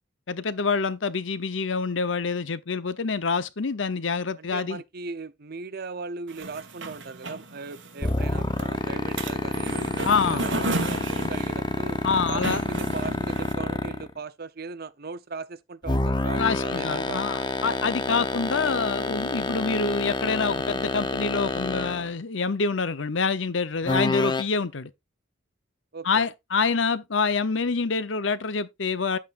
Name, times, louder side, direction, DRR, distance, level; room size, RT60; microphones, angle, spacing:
voice 1, 0.3-4.8 10.0-10.4 12.0-12.6 16.3-24.9 26.0-29.2, left 4 dB, 70° left, 0.8 m, -26 dB
voice 2, 4.4-12.0 12.3-17.8 25.9-26.3, right 4 dB, 50° right, 0.8 m, -38 dB
sound 1, 6.3-13.5, right 2 dB, 70° right, 2.0 m, -34 dB
sound 2, 8.0-14.1 15.8-22.1 23.8-24.4, left 2 dB, 25° left, 0.9 m, -27 dB
9.9 x 8.3 x 2.5 m
head